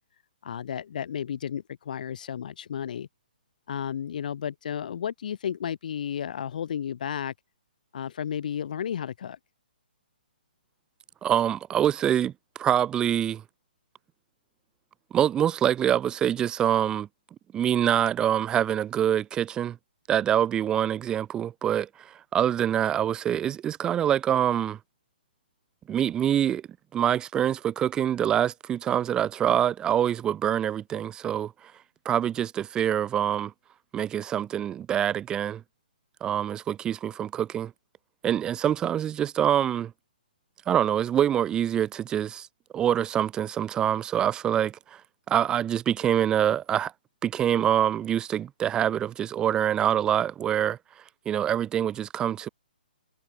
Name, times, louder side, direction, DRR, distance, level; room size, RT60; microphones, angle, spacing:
voice 1, 0.4-3.1 3.7-7.3 7.9-9.4, left 8 dB, 55° left, 3.1 m, -33 dB
voice 2, 11.2-13.4 15.1-17.1 17.5-19.8 20.1-24.8 25.9-26.6 26.9-31.7 32.0-33.5 33.9-35.6 36.2-37.7 38.2-39.9 40.7-42.5 42.7-45.0 45.3-46.9 47.2-50.8 51.3-52.5, right 10 dB, 15° right, 0.8 m, -25 dB
figure-of-eight pair, 130°, 5 cm